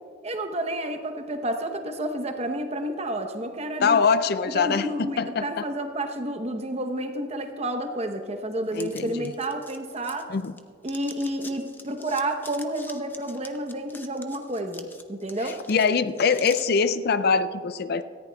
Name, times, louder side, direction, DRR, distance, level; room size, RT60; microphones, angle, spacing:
voice 1, 0.2-4.1 4.5-10.3 10.8-15.6, right 1 dB, 35° right, 6 dB, 0.9 m, -30 dB
voice 2, 3.8-5.6 8.7-9.3 10.3-10.5 15.4-18.0, left 5 dB, 55° left, 13 dB, 0.4 m, -23 dB
sound 1, 8.7-10.6 10.8-16.6, left 3 dB, 10° left, 0.6 m, -45 dB
18.0 x 14.0 x 2.3 m, 2.1 s
head